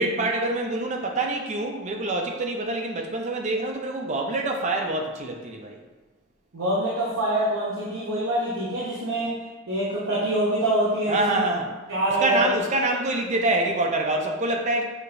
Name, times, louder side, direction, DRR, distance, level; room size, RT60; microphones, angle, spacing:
voice 1, 0.0-5.8 11.1-11.7 12.2-14.8, right 2 dB, 30° right, 2 dB, 0.4 m, -26 dB
voice 2, 6.5-9.4 9.7-11.4 11.9-12.5, right 1 dB, 70° right, -7 dB, 0.8 m, -25 dB
6.4 x 2.8 x 2.5 m, 1.3 s
head